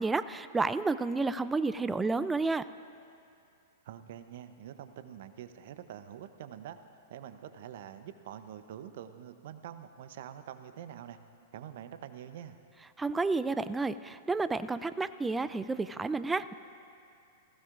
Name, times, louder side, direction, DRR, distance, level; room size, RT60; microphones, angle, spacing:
voice 1, 0.0-2.6 13.0-16.5, right 3 dB, 10° right, 14 dB, 0.3 m, -30 dB
voice 2, 3.8-6.8 7.1-11.2 11.5-12.6, right 10 dB, 60° right, 10 dB, 0.7 m, -45 dB
19.5 x 15.5 x 2.5 m, 2.5 s
hypercardioid pair, 105°, 0 cm